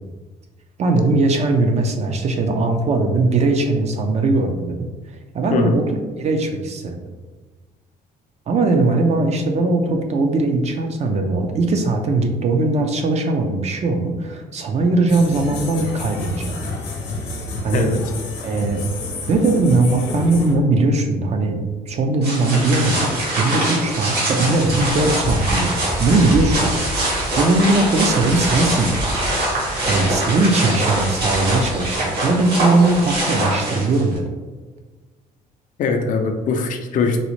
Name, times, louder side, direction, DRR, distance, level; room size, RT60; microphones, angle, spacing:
voice 1, 0.8-4.9 5.3-7.1 8.5-16.7 17.6-17.9 18.4-18.8 19.3-26.8 27.1-29.0 29.9-34.2, right 2 dB, 40° right, 4 dB, 0.4 m, -19 dB
sound 1, 15.1-20.5, left 2 dB, 85° left, 0.7 m, -29 dB
voice 2, 17.7-18.0 35.8-37.2, left 4 dB, 50° left, 5 dB, 0.4 m, -21 dB
sound 2, 22.2-34.2, right 1 dB, 65° right, 1.4 m, -23 dB
3.9 x 2.0 x 3.0 m, 1.3 s
cardioid pair, 110°, 17 cm